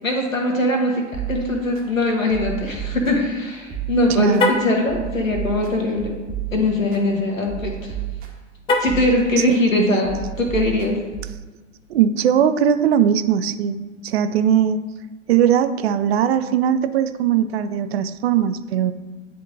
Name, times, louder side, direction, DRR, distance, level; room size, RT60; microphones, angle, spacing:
voice 1, 0.0-6.2 6.5-8.0 8.8-11.0, left 2 dB, 90° left, 0 dB, 1.3 m, -21 dB
sound 1, 1.1-1.9 2.3-3.4 3.7-4.4 4.9-7.0 7.5-8.5 8.9-9.6 10.0-11.5, right 12 dB, 25° right, 0.8 m, -32 dB
voice 2, 4.2-4.5 9.8-10.1 11.9-13.8 14.0-14.8 15.3-18.9, right 9 dB, 55° right, 11 dB, 0.5 m, -19 dB
Car, 4.3-4.8 8.6-9.1, left 2 dB, 15° left, 0.5 m, -21 dB
10.0 x 3.5 x 2.6 m, 1.3 s
figure-of-eight pair, 100°, 39 cm